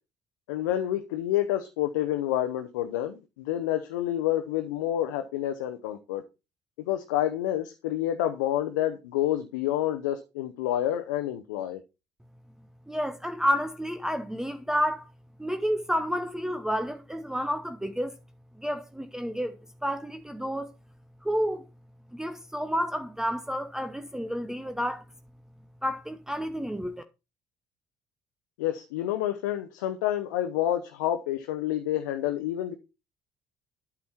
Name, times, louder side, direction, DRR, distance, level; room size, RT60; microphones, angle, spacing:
voice 1, 0.5-6.2 6.9-11.8 28.6-32.7, left 12 dB, 85° left, 0.6 m, -28 dB
voice 2, 12.9-15.1 15.4-18.1 18.6-19.6 19.8-20.7 21.2-21.6 22.1-25.0 25.8-27.0, equal, 5° right, 0.8 m, -30 dB
8.6 x 6.0 x 4.3 m
hypercardioid pair, 60°, 10 cm